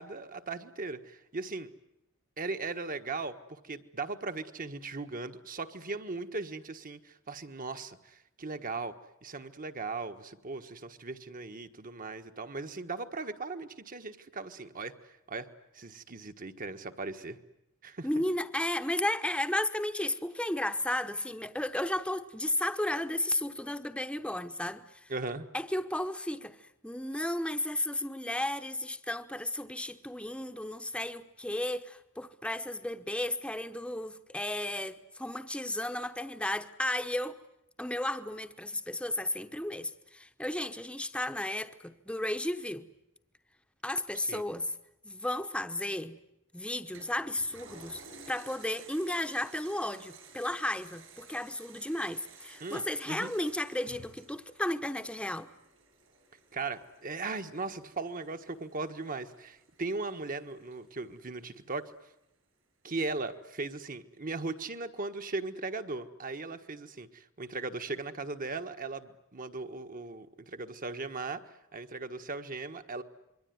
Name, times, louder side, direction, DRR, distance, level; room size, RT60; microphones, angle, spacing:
voice 1, 0.0-1.7 2.4-8.9 9.2-14.9 15.3-15.5 15.7-17.4 17.8-18.2 25.1-25.5 44.1-44.4 52.6-53.3 56.5-61.9 62.8-71.4 71.7-73.0, right 3 dB, 40° right, 1.5 m, -38 dB
voice 2, 18.0-25.1 25.5-37.4 37.8-42.9 43.8-44.7 45.0-46.2 46.5-48.0 48.3-55.5, left 1 dB, 5° left, 1.0 m, -34 dB
Toilet flush, 46.9-61.8 62.2-62.3, right 4 dB, 70° right, 7.3 m, -55 dB
27.0 x 23.0 x 9.5 m
head